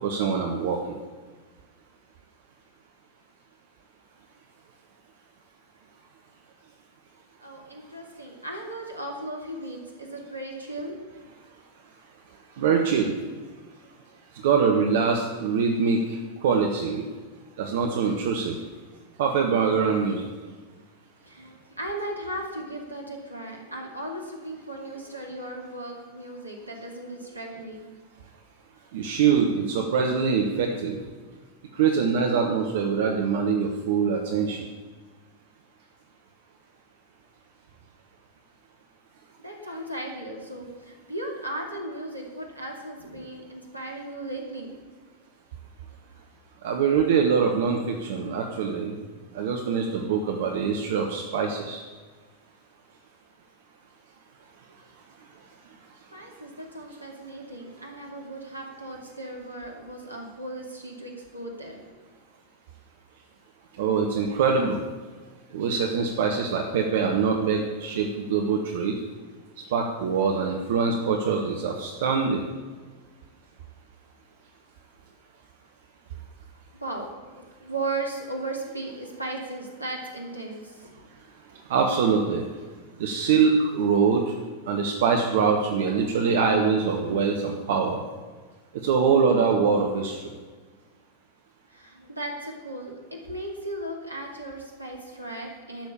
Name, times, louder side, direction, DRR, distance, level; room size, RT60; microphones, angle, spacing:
voice 1, 0.0-0.8 12.6-13.1 14.4-16.0 16.4-17.0 17.6-18.5 19.2-20.3 28.9-31.0 31.7-34.6 46.6-48.9 49.3-51.8 63.8-64.8 65.5-69.0 69.7-72.4 81.7-82.4 83.0-84.2 84.7-88.0 88.8-90.2, right 6 dB, 55° right, 3 dB, 1.3 m, -23 dB
voice 2, 7.4-11.0 21.2-27.8 39.4-44.7 56.1-62.1 76.8-80.9 91.7-95.9, right 1 dB, 85° right, 0 dB, 2.5 m, -36 dB
12.0 x 6.9 x 8.5 m, 1.4 s
figure-of-eight pair, 90°, 0 cm